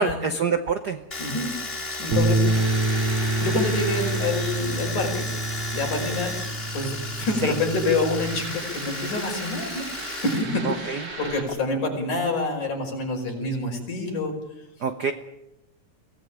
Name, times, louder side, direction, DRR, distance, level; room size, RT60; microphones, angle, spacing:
voice 1, 0.0-1.0 7.4-7.5 10.6-11.0 14.8-15.1, right 5 dB, 85° right, 8 dB, 0.8 m, -25 dB
Domestic sounds home sounds, 1.1-10.4 10.7-11.5, left 2 dB, 20° left, 2.7 m, -34 dB
voice 2, 1.2-1.5 2.0-2.4 3.4-5.2 5.7-6.4 6.7-14.4, left 2 dB, 85° left, 1 dB, 6.7 m, -27 dB
sound 1, 2.1-8.4, right 2 dB, 65° right, 5.4 m, -27 dB
sound 2, 2.5-5.9 8.2-11.4, right 2 dB, 45° right, 4.8 m, -38 dB
22.5 x 18.0 x 8.9 m, 0.90 s
omnidirectional pair, 3.4 m